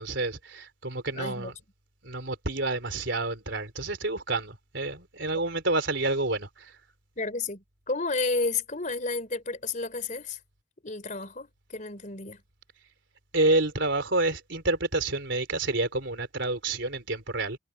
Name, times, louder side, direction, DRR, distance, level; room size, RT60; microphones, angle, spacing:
voice 1, 0.0-1.5 2.0-6.7 13.3-17.6, right 2 dB, 60° right, 4.3 m, -28 dB
voice 2, 1.1-1.5 7.2-10.4 10.8-12.4, left 3 dB, 40° left, 4.0 m, -31 dB
head